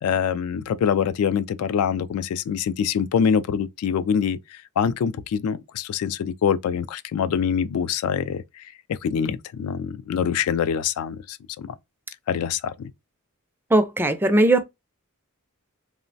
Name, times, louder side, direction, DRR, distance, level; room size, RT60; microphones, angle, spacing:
voice 1, 0.0-4.4 4.8-8.6 8.9-11.7 12.3-12.9, left 7 dB, 85° left, 0.3 m, -24 dB
voice 2, 13.7-14.6, right 1 dB, 10° right, 0.3 m, -18 dB
3.0 x 2.1 x 2.5 m
head